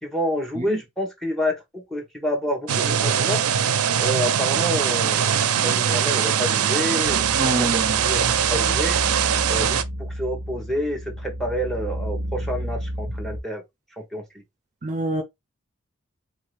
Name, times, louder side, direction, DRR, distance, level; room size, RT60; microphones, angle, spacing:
voice 1, 0.0-3.4 4.0-9.0 9.5-13.6 14.0-14.2, equal, ahead, 1.1 m, -29 dB
sound 1, 2.7-9.8, right 8 dB, 85° right, 0.5 m, -21 dB
sound 2, 7.0-13.4, equal, 55° left, 1.2 m, -31 dB
voice 2, 7.4-8.0 14.8-15.2, right 2 dB, 35° right, 0.6 m, -26 dB
4.0 x 2.8 x 3.2 m
head